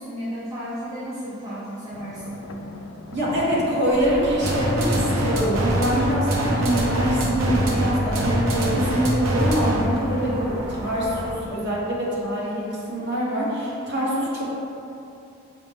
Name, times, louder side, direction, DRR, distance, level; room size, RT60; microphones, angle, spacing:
voice 1, 0.0-2.5, equal, 15° right, -11 dB, 0.5 m, -33 dB
sound 1, 1.9-8.1, left 2 dB, 90° left, 0.3 m, -39 dB
voice 2, 3.1-14.6, equal, 55° right, -7 dB, 1.0 m, -24 dB
sound 2, 3.9-11.3, equal, 35° right, 1.0 m, -33 dB
sound 3, 4.4-10.0, right 1 dB, 85° right, 0.6 m, -24 dB
5.7 x 2.1 x 3.3 m, 2.7 s
head